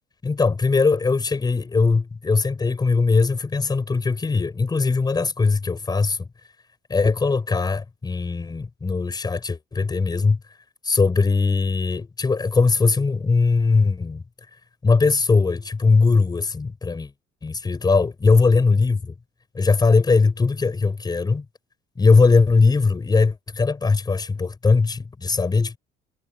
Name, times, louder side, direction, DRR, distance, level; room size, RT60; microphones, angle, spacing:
voice 1, 0.2-6.3 6.9-10.4 10.8-14.2 14.8-17.1 17.4-19.1 19.5-21.4 22.0-25.8, left 4 dB, 25° left, 6.7 m, -20 dB
cardioid pair, 110°, 17 cm